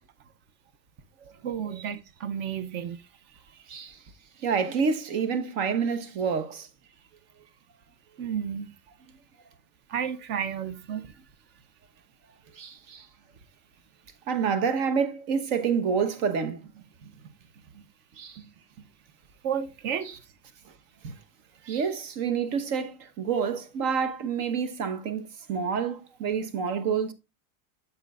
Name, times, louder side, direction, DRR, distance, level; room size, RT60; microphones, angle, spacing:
voice 1, 1.4-3.9 8.2-8.7 9.9-11.1 19.4-20.1, right 8 dB, 25° right, 0.4 m, -33 dB
voice 2, 4.4-6.7 12.6-13.1 14.3-16.8 18.2-18.4 21.0-21.1 21.7-27.1, right 6 dB, 50° right, 1.1 m, -28 dB
9.0 x 6.6 x 2.3 m
supercardioid pair, 160°, 44 cm